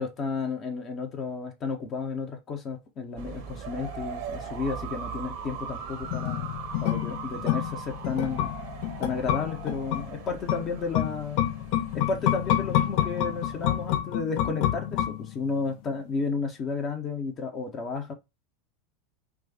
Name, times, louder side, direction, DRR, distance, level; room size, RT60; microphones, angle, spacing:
voice 1, 0.0-8.5 9.0-11.5 11.9-18.1, left 4 dB, 35° left, 1.2 m, -32 dB
sound 1, 3.2-14.0, right 5 dB, 55° right, 1.3 m, -40 dB
sound 2, 6.1-15.6 15.9-16.0, left 12 dB, 55° left, 0.8 m, -28 dB
4.6 x 2.5 x 4.3 m
figure-of-eight pair, 85°, 0 cm